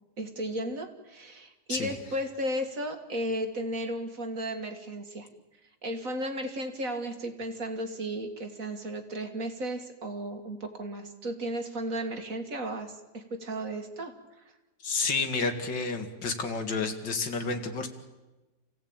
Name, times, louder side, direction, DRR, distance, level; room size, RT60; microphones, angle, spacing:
voice 1, 0.2-5.3 5.8-14.1, right 1 dB, 50° right, 6 dB, 2.3 m, -34 dB
voice 2, 14.8-17.9, left 4 dB, 80° left, 6 dB, 2.8 m, -30 dB
28.5 x 16.5 x 8.8 m, 1.1 s
omnidirectional pair, 1.9 m